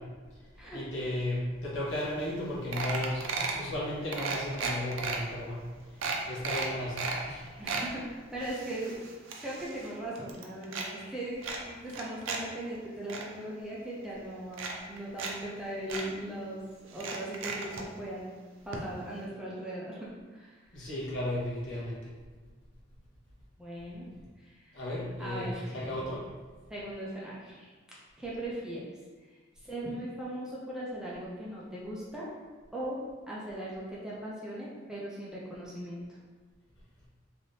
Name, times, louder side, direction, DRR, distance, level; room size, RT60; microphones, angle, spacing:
voice 1, 0.3-7.5 20.7-22.1 24.7-26.2, left 1 dB, 65° left, -6 dB, 1.0 m, -35 dB
sound 1, 2.0-2.1 2.3-2.5 2.7-3.6 4.1-5.2 5.6-5.7 6.0-7.2 7.5-7.9 8.4-9.9 10.2-10.9 11.4-12.4 12.7-13.2 14.0-14.1 14.5-15.3 15.6-15.7 15.9-16.1 16.9-17.8 18.7-18.8 19.1-19.2, right 4 dB, 70° right, 0.4 m, -35 dB
voice 2, 7.6-9.0 9.4-16.6 16.9-18.3 18.7-20.9 23.6-24.0 24.4-24.8 25.2-26.1 26.7-27.7 28.2-28.8 29.6-32.3 32.7-33.0 33.3-36.0, right 1 dB, 5° right, -7 dB, 0.4 m, -39 dB
3.3 x 2.6 x 2.6 m, 1.4 s
head